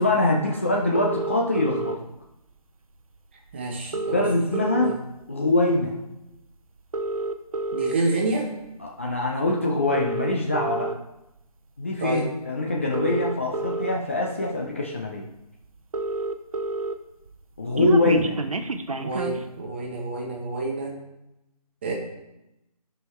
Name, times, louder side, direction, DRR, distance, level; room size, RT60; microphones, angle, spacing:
voice 1, 0.0-2.0 4.1-4.9 5.3-6.0 8.8-11.0 11.8-15.3 17.6-18.4, left 2 dB, 20° left, -1 dB, 0.5 m, -23 dB
sound 1, 0.9-2.0 3.1-3.2 3.5-3.6 3.8-5.2 5.7-5.9 6.8-7.9 8.6-8.9 9.8-10.9 12.2-12.3 12.8-13.9 14.6-14.7 15.0-15.1 15.3-15.4 15.6-16.9 17.3-19.4, right 2 dB, 60° right, 0.8 m, -29 dB
voice 2, 3.5-4.3 4.8-5.0 7.7-8.5 12.0-12.3 18.0-18.2 18.9-21.0 21.8-21.9, right 2 dB, 15° right, 0 dB, 1.0 m, -28 dB
11.5 x 5.7 x 3.1 m, 0.89 s
figure-of-eight pair, 160°, 20 cm